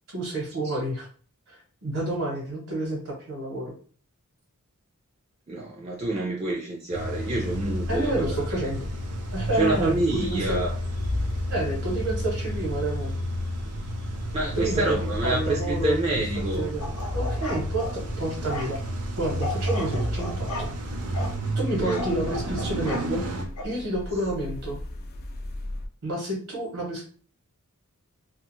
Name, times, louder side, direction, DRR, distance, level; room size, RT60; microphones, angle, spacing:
voice 1, 0.1-1.1 1.8-3.7 7.9-8.8 9.3-10.6 11.5-13.1 14.5-15.0 15.2-16.2 16.6-18.8 19.2-20.7 21.1-23.2 23.6-24.8 26.0-27.0, right 1 dB, 70° right, -2 dB, 0.9 m, -29 dB
voice 2, 5.5-8.4 9.5-10.7 14.3-16.7 21.8-22.0, right 2 dB, 30° right, -2 dB, 0.4 m, -27 dB
Car / Engine starting / Idling, 6.9-23.5, right 1 dB, 90° right, 0.5 m, -31 dB
sound 1, 7.5-25.9, left 1 dB, 45° left, 0.4 m, -37 dB
sound 2, 16.8-18.0 18.5-18.7 19.4-20.7 21.1-21.4 21.8-23.1 23.6-23.7, left 2 dB, 80° left, 0.7 m, -35 dB
2.5 x 2.3 x 3.0 m, 0.42 s
head